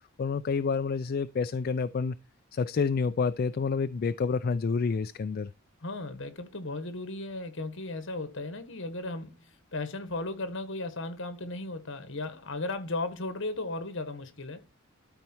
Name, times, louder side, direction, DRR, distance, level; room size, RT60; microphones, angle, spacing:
voice 1, 0.2-2.2 2.5-5.5, left 5 dB, 45° left, 0.3 m, -28 dB
voice 2, 5.8-14.6, left 2 dB, 65° left, 1.5 m, -36 dB
12.5 x 4.4 x 4.5 m
head